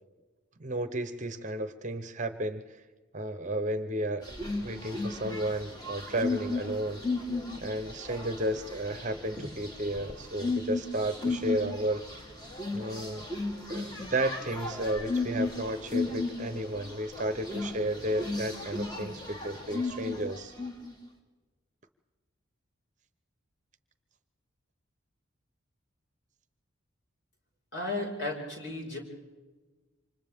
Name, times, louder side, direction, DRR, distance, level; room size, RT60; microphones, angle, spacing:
voice 1, 0.6-2.8 3.1-4.3 4.6-7.0 7.6-12.0 12.7-13.3 13.7-20.5, right 1 dB, 35° right, 10 dB, 0.9 m, -33 dB
sound 1, 4.2-20.9, left 3 dB, 20° left, 2.4 m, -35 dB
voice 2, 27.7-29.0, left 2 dB, 55° left, -1 dB, 5.3 m, -34 dB
28.5 x 25.5 x 3.6 m, 1.3 s
head